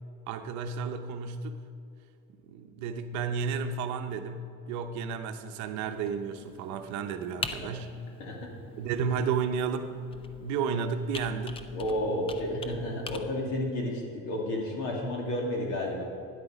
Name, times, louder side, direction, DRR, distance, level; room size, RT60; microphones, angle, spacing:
voice 1, 0.3-1.6 2.4-7.9 8.8-9.9 10.4-11.8 12.1-12.3, right 6 dB, 55° right, 7 dB, 0.8 m, -32 dB
Computer keyboard, 5.8-13.2, left 4 dB, 15° left, 0.3 m, -44 dB
voice 2, 8.2-8.5 11.7-16.0, left 1 dB, 65° left, 0 dB, 2.6 m, -31 dB
12.5 x 9.8 x 5.0 m, 2.7 s
cardioid pair, 175°, 34 cm